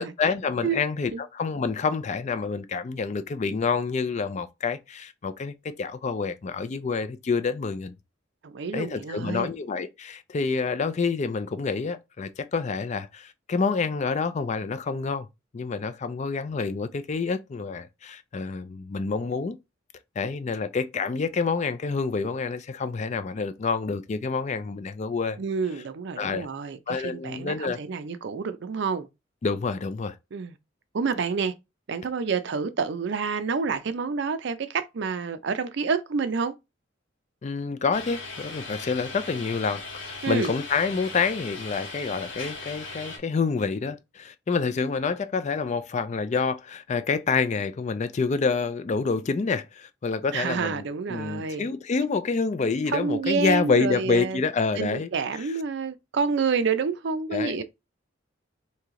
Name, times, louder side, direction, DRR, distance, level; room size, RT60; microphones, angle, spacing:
voice 1, 0.0-7.9 8.7-15.3 15.5-19.6 20.2-25.4 26.2-26.5 26.9-27.8 29.4-30.1 37.4-50.8 51.1-55.1 55.3-55.5 57.3-57.6, left 4 dB, 35° left, 0.4 m, -28 dB
voice 2, 8.4-9.5 25.4-29.1 30.3-30.5 30.9-31.5 31.9-36.5 40.2-40.5 50.3-51.7 52.9-54.4 54.8-57.6, right 5 dB, 65° right, 0.5 m, -28 dB
sound 1, 37.9-43.2, left 3 dB, 90° left, 1.5 m, -38 dB
3.1 x 2.8 x 3.6 m
head